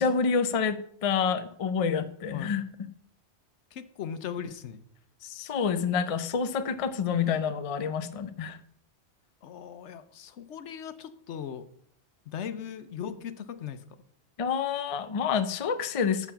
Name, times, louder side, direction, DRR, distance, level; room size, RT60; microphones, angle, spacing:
voice 1, 0.0-2.6 5.2-8.6 14.4-16.3, left 6 dB, 40° left, 11 dB, 0.5 m, -28 dB
voice 2, 3.7-4.8 9.4-11.7 12.3-13.8, left 8 dB, 80° left, 12 dB, 1.0 m, -38 dB
7.0 x 6.8 x 5.7 m, 0.65 s
omnidirectional pair, 1.2 m